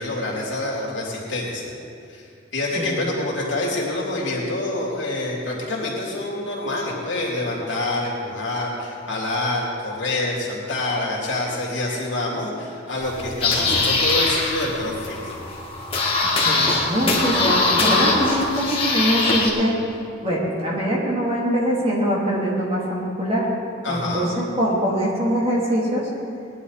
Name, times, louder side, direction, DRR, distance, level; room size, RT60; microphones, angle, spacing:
voice 1, 0.0-1.7 2.1-2.3 2.5-15.3 23.8-24.3, left 2 dB, 60° left, -4 dB, 3.1 m, -26 dB
sound 1, 13.0-19.5, left 3 dB, 25° left, 2.0 m, -22 dB
voice 2, 16.4-19.7 20.2-23.5 23.9-26.1, equal, 30° right, -5 dB, 3.0 m, -23 dB
20.0 x 11.5 x 4.2 m, 2.5 s
head